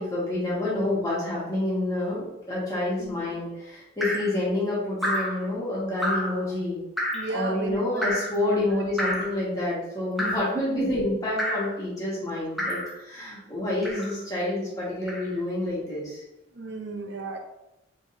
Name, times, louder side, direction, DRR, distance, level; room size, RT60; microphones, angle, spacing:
voice 1, 0.0-6.8 7.3-16.2, left 1 dB, 15° left, -8 dB, 1.6 m, -28 dB
Drip, 4.0-4.3 5.0-5.4 6.0-6.4 7.0-7.3 8.0-8.4 9.0-9.3 10.2-10.5 11.4-11.7 12.6-12.9 13.8-14.2 15.1-15.3, equal, ahead, 0.8 m, -29 dB
voice 2, 7.1-8.1 8.5-8.8 16.5-17.4, right 3 dB, 60° right, 3 dB, 0.6 m, -34 dB
5.1 x 3.4 x 2.6 m, 0.93 s
head